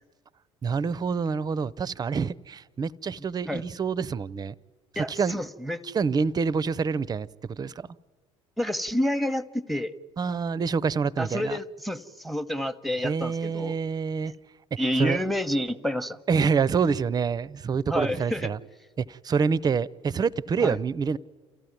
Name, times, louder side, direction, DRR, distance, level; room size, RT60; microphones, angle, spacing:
voice 1, 0.6-4.5 4.9-5.4 5.9-7.9 10.2-11.6 13.0-14.3 15.0-15.2 16.3-18.6 19.0-21.2, right 5 dB, 25° right, 0.6 m, -27 dB
voice 2, 5.0-5.8 8.6-9.9 11.2-13.7 14.8-16.2 17.9-18.5 20.6-20.8, left 1 dB, ahead, 1.0 m, -29 dB
28.5 x 14.5 x 9.5 m
figure-of-eight pair, 55°, 15 cm